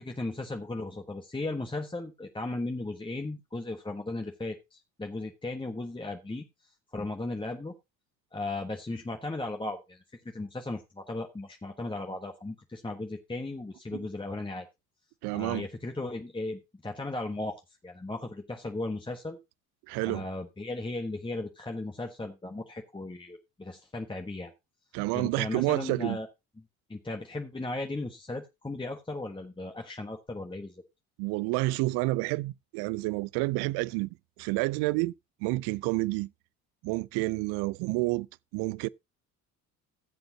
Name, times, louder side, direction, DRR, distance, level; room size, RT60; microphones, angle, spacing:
voice 1, 0.0-6.4 6.9-7.7 8.3-14.7 15.3-19.4 20.0-24.5 25.1-26.3 26.9-30.8, left 2 dB, 10° left, 1.4 m, -36 dB
voice 2, 15.2-15.6 19.9-20.3 24.9-26.2 31.2-34.1 34.4-35.1 35.4-36.3 36.8-38.3 38.5-38.9, right 22 dB, 65° right, 0.6 m, -29 dB
16.0 x 7.8 x 2.8 m
hypercardioid pair, 55°, 44 cm